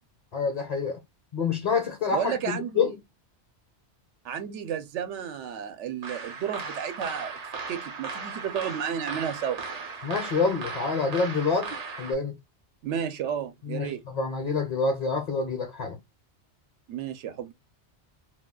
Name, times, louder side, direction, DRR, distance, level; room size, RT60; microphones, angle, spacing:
voice 1, 0.3-1.0 1.3-3.0 10.0-12.4 13.6-16.0, left 4 dB, 45° left, 0.6 m, -27 dB
voice 2, 2.1-2.9 4.2-7.3 7.7-9.6 12.8-14.0 16.9-17.5, right 8 dB, 85° right, 0.9 m, -32 dB
sound 1, 6.0-12.1, right 4 dB, 50° right, 0.5 m, -37 dB
2.3 x 2.3 x 3.5 m
omnidirectional pair, 1.2 m